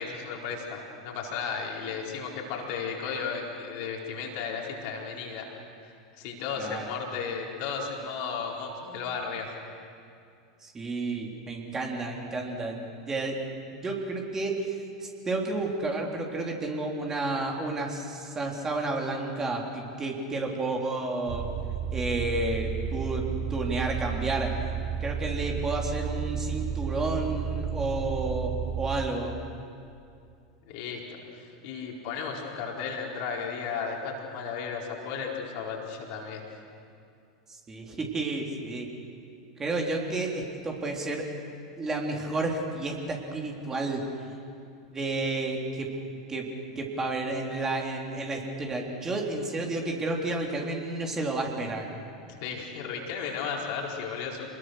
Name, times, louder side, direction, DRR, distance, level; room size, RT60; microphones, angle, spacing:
voice 1, 0.0-5.4 5.8-9.5 30.7-36.4 52.3-54.5, left 5 dB, 55° left, -1 dB, 4.5 m, -34 dB
voice 2, 6.6-6.9 10.6-13.5 13.7-14.8 15.0-21.5 21.9-24.5 25.0-29.3 37.7-38.9 39.6-41.3 41.8-44.0 44.9-45.9 46.3-46.5 46.8-51.9, right 2 dB, 20° right, 0 dB, 3.8 m, -31 dB
sound 1, 21.3-29.1, right 7 dB, 45° right, 1.4 m, -32 dB
27.5 x 21.0 x 6.5 m, 2.4 s
figure-of-eight pair, 85°, 2 cm